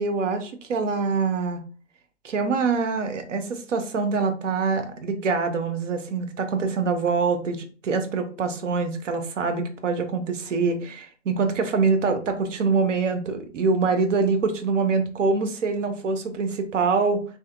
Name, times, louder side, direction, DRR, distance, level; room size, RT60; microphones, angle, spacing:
voice 1, 0.0-1.6 2.2-17.2, right 4 dB, 80° right, 7 dB, 0.6 m, -24 dB
2.7 x 2.1 x 2.2 m, 0.39 s
hypercardioid pair, 140°, 37 cm